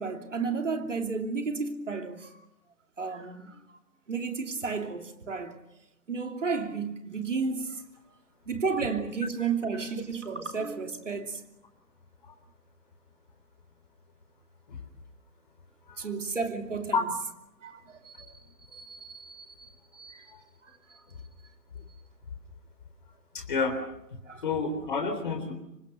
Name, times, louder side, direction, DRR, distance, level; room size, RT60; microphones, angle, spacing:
voice 1, 0.0-2.4 3.0-3.6 4.1-5.6 6.1-7.8 8.5-11.4 16.0-17.0 17.6-18.4 18.7-20.3 20.9-21.0 24.2-24.4, right 5 dB, 50° right, 3.0 m, -33 dB
voice 2, 23.3-23.8 24.1-25.6, left 4 dB, 30° left, 3.7 m, -30 dB
27.0 x 25.0 x 6.6 m
figure-of-eight pair, 160°, 49 cm